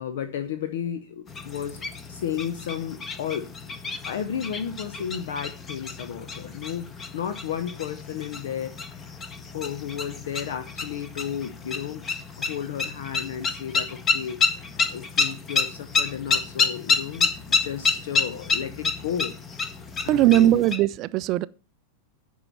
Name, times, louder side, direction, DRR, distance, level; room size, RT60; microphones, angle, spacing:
voice 1, 0.0-1.8 2.1-3.5 4.1-9.1 9.5-12.0 12.4-14.4 14.9-19.3 20.0-20.6, left 9 dB, 55° left, 0.8 m, -33 dB
sound 1, 1.3-20.8, left 4 dB, 25° left, 1.3 m, -29 dB
voice 2, 20.1-21.5, right 14 dB, 40° right, 0.4 m, -19 dB
9.8 x 4.8 x 6.8 m
figure-of-eight pair, 90°, 0 cm